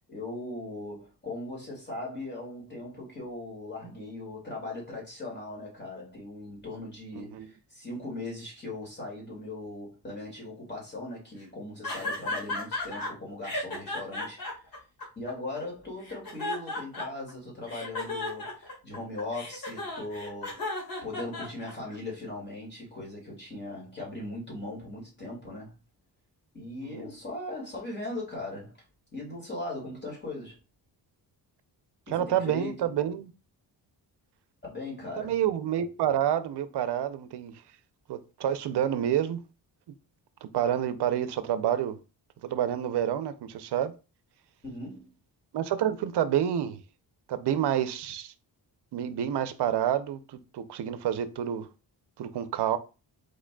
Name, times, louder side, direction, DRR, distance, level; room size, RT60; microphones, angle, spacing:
voice 1, 0.1-14.8 15.2-25.7 26.5-28.8 29.1-30.6 32.1-32.9 34.6-35.3 44.6-45.1, left 2 dB, 25° left, 2.1 m, -39 dB
voice 2, 7.2-7.5 26.8-27.1 32.1-33.3 35.2-37.5 38.1-39.4 40.4-42.0 42.4-43.9 45.5-46.8 47.3-48.3 48.9-51.7 52.2-52.8, right 10 dB, 65° right, 0.6 m, -28 dB
sound 1, 11.8-13.1 13.4-15.6 16.0-17.3 17.7-21.9, left 2 dB, 50° left, 1.8 m, -34 dB
4.9 x 4.4 x 2.2 m
wide cardioid pair, 180°, 43 cm